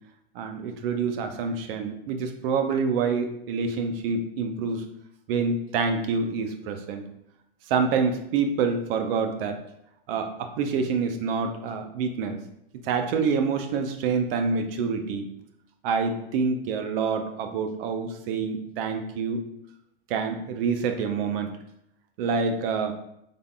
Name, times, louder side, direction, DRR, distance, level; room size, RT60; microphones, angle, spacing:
voice 1, 0.3-4.8 5.3-7.0 7.7-9.6 10.1-12.4 12.8-15.3 15.8-19.5 20.1-21.5 22.2-22.9, right 5 dB, 65° right, 6 dB, 0.6 m, -27 dB
3.8 x 3.4 x 2.3 m, 0.78 s
hypercardioid pair, 115°, 31 cm